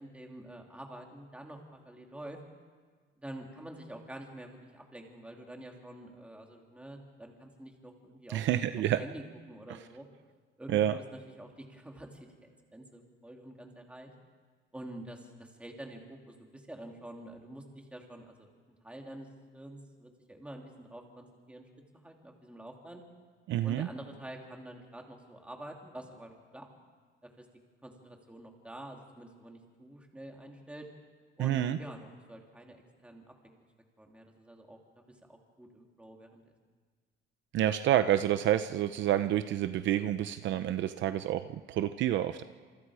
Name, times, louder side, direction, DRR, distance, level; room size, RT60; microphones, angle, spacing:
voice 1, 0.0-2.4 3.2-10.1 10.6-14.1 14.7-18.5 18.8-19.3 19.5-21.6 21.9-23.0 23.6-26.7 27.2-27.5 27.8-30.9 31.4-33.5 34.0-34.8 35.3-36.4, right 1 dB, 5° right, 1 dB, 2.7 m, -47 dB
voice 2, 8.3-9.0 10.7-10.9 23.5-23.9 31.4-31.8 37.5-42.4, right 12 dB, 60° right, 11 dB, 0.7 m, -28 dB
29.5 x 27.5 x 4.9 m, 1.5 s
cardioid pair, 165°, 21 cm